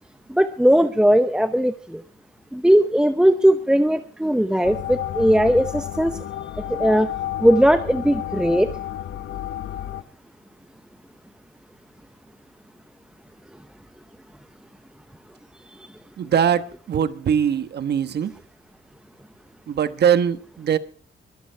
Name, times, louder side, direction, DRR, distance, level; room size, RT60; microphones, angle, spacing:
voice 1, 0.3-2.0 2.5-6.2 6.7-7.1 7.4-8.7, equal, 5° right, 10 dB, 0.7 m, -18 dB
sound 1, 4.6-10.0, left 12 dB, 70° left, 1.0 m, -31 dB
voice 2, 16.2-18.3 19.7-20.8, right 8 dB, 55° right, 12 dB, 1.2 m, -21 dB
23.0 x 9.2 x 4.6 m, 0.42 s
cardioid pair, 105°, 20 cm